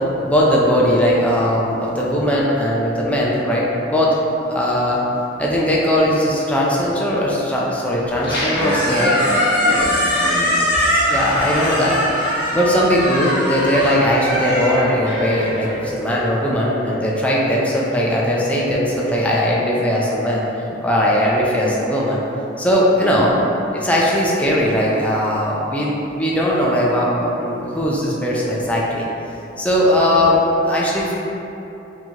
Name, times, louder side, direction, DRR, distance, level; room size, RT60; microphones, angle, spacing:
voice 1, 0.2-4.2 4.5-5.0 5.4-9.1 9.6-9.7 11.1-12.0 12.5-20.4 20.8-22.2 22.6-23.3 23.7-29.1 29.6-31.1, equal, 10° left, -5 dB, 0.4 m, -19 dB
Squeak, 8.1-16.3, equal, 70° left, 1.1 m, -21 dB
voice 2, 8.5-8.9 9.2-10.6 23.0-23.2, equal, 15° right, -12 dB, 1.2 m, -28 dB
4.4 x 2.9 x 2.8 m, 2.9 s
head